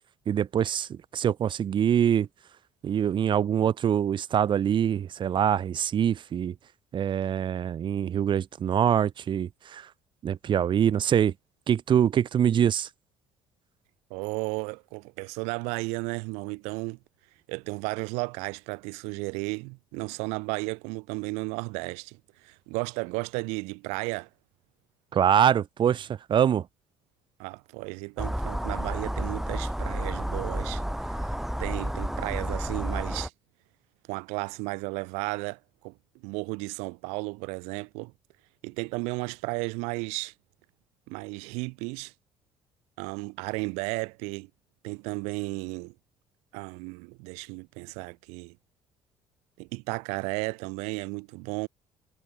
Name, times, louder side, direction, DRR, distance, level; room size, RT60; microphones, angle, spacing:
voice 1, 0.3-2.3 2.8-6.5 6.9-9.9 10.2-11.3 11.7-12.9 25.1-26.7, right 9 dB, 50° right, 0.8 m, -24 dB
voice 2, 14.1-17.0 17.5-24.3 27.4-33.3 34.1-35.9 36.2-38.1 38.6-40.3 41.1-42.1 43.0-44.5 44.8-45.9 46.5-48.5 49.6-51.7, right 30 dB, 90° right, 0.6 m, -34 dB
sound 1, 28.2-33.3, equal, 5° right, 2.4 m, -31 dB
supercardioid pair, 80°, 11 cm